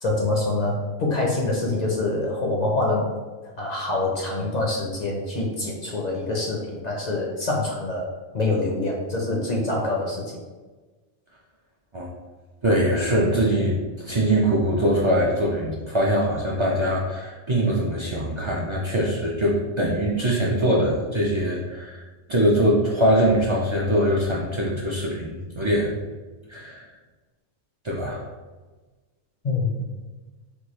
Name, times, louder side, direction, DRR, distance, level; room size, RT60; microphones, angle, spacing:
voice 1, 0.0-3.1 3.4-8.1 8.3-10.4 29.4-29.9, left 2 dB, 50° left, -1 dB, 0.5 m, -25 dB
voice 2, 12.6-22.0 22.3-26.0 26.5-26.9 27.8-28.2, equal, 50° right, -4 dB, 0.3 m, -22 dB
4.5 x 2.2 x 3.0 m, 1.3 s
omnidirectional pair, 1.1 m